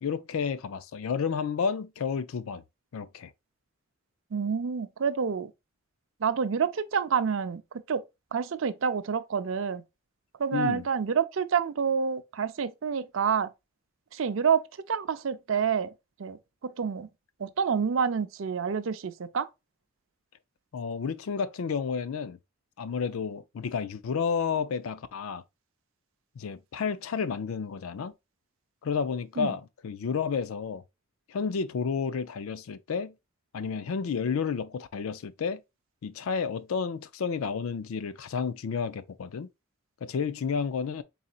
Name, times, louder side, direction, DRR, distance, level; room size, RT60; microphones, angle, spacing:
voice 1, 0.0-2.6 2.9-3.3 10.5-10.8 20.7-22.4 22.8-25.4 26.4-28.1 28.8-30.8 31.3-33.1 33.5-35.6 36.0-39.5 40.0-41.0, left 6 dB, 80° left, 0.4 m, -31 dB
voice 2, 4.3-5.5 6.2-7.6 7.9-8.0 8.3-9.8 10.4-13.5 14.1-15.9 16.2-17.1 17.4-19.5 29.4-29.5, right 6 dB, 70° right, 0.5 m, -28 dB
4.1 x 3.9 x 2.3 m
head